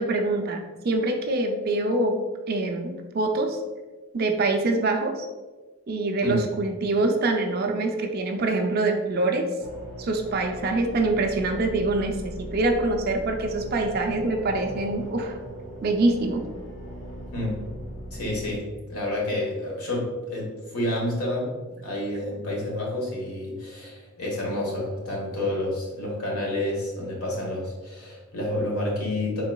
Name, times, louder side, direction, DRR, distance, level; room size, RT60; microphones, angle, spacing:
voice 1, 0.0-2.2 2.5-3.6 4.1-5.3 5.9-9.5 10.0-15.4 15.8-16.4, right 2 dB, 45° right, 4 dB, 0.4 m, -25 dB
sound 1, 9.6-18.6, equal, 15° left, 1.4 m, -38 dB
voice 2, 18.1-21.5 21.8-29.4, left 1 dB, 90° left, -2 dB, 1.3 m, -29 dB
3.9 x 3.7 x 2.3 m, 1.2 s
head